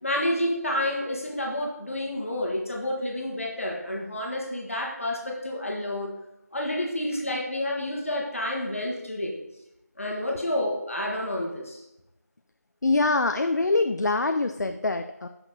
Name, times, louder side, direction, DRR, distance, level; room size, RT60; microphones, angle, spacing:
voice 1, 0.0-6.1 6.5-9.4 10.0-11.8, left 1 dB, 50° left, -1 dB, 1.3 m, -29 dB
voice 2, 12.8-15.3, left 3 dB, 75° left, 7 dB, 0.4 m, -24 dB
6.0 x 5.1 x 3.8 m, 0.88 s
figure-of-eight pair, 175°, 9 cm